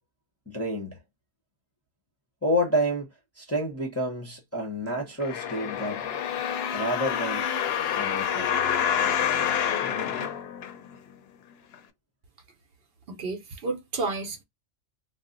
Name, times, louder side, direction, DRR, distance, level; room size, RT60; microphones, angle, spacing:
voice 1, 0.5-1.0 2.4-3.1 3.4-6.1 6.7-7.5 7.9-8.6, equal, 15° left, 0.6 m, -29 dB
sound 1, 5.2-11.1 11.7-11.8, left 8 dB, 70° left, 0.8 m, -28 dB
voice 2, 13.1-14.4, right 3 dB, 60° right, 0.8 m, -31 dB
2.4 x 2.0 x 3.7 m
omnidirectional pair, 1.2 m